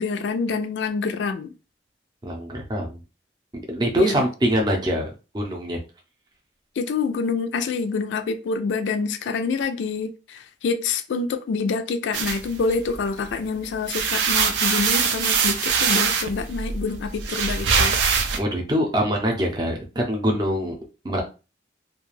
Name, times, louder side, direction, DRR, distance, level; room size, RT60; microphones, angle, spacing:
voice 1, 0.0-1.5 4.0-4.2 6.8-18.0, left 4 dB, 90° left, 0.3 m, -27 dB
voice 2, 2.2-3.0 3.7-5.8 18.4-20.7 21.0-21.2, equal, 25° right, 0.5 m, -24 dB
sound 1, 12.1-13.3 13.7-18.4, right 5 dB, 85° right, 0.4 m, -23 dB
2.4 x 2.2 x 3.1 m
head